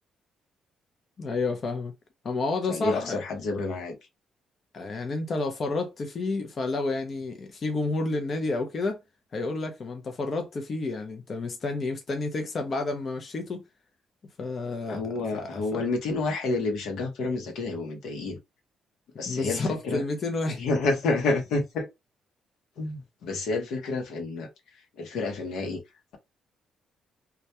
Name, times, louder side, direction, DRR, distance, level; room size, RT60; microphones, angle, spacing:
voice 1, 1.2-1.9 2.2-3.2 4.7-9.0 9.3-13.6 14.4-15.0 15.3-15.8 19.3-20.6, left 3 dB, 45° left, 0.5 m, -30 dB
voice 2, 2.7-3.9 14.9-18.4 19.2-20.0 20.5-21.9 22.8-24.5 25.0-25.8, left 3 dB, 80° left, 0.8 m, -29 dB
2.2 x 2.2 x 2.8 m
cardioid pair, 90°, 0 cm